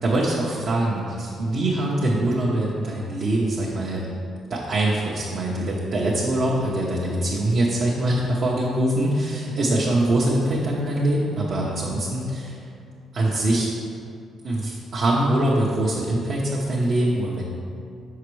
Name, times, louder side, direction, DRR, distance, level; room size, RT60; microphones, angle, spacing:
voice 1, 0.0-4.1 4.5-12.7 13.1-13.7 14.4-17.4, right 1 dB, 55° right, -5 dB, 0.8 m, -23 dB
6.0 x 5.7 x 3.2 m, 2.4 s
cardioid pair, 90°, 0 cm